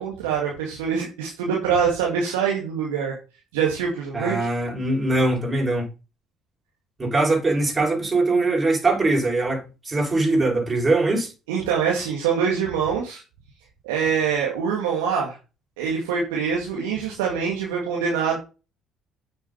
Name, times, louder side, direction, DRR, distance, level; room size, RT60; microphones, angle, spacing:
voice 1, 0.0-3.2 3.5-4.5 11.5-13.2 13.8-15.4 15.8-18.4, right 6 dB, 80° right, 2.1 m, -24 dB
voice 2, 4.1-5.9 7.0-11.3, right 2 dB, 30° right, 6.3 m, -22 dB
9.2 x 7.0 x 4.3 m
hypercardioid pair, 55°, 0 cm